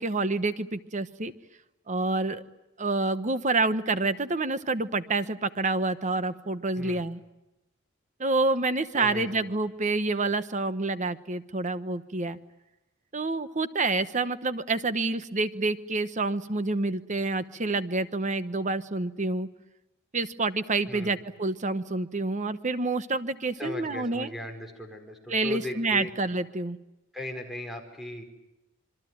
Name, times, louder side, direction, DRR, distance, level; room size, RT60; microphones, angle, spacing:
voice 1, 0.0-1.3 1.9-2.4 2.8-7.2 8.2-12.4 13.1-19.5 20.1-24.3 25.3-26.8, right 3 dB, 35° right, 12 dB, 1.0 m, -28 dB
voice 2, 8.9-9.5 20.9-21.2 23.6-26.1 27.1-28.2, left 1 dB, ahead, 4 dB, 4.9 m, -38 dB
27.0 x 23.0 x 9.2 m, 0.94 s
head